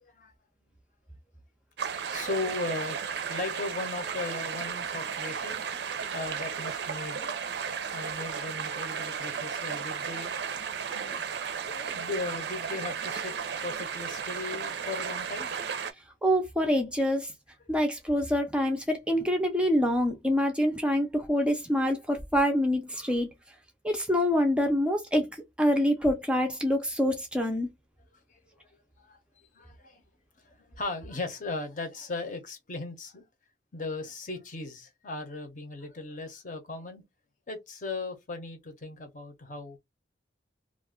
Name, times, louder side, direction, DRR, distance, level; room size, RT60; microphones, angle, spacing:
voice 1, 0.0-0.3 2.1-5.6 6.1-7.3 7.9-10.3 10.9-11.3 11.7-13.3 13.6-15.5 28.3-28.4 29.0-29.2 29.5-30.0 30.4-33.3 33.7-37.0 37.5-39.8, left 3 dB, 45° left, 0.7 m, -37 dB
sound 1, 1.8-15.9, right 6 dB, 65° right, 0.5 m, -34 dB
voice 2, 16.2-17.3 17.7-23.3 23.8-25.3 25.6-27.7, equal, 5° right, 0.4 m, -26 dB
2.4 x 2.2 x 3.5 m
head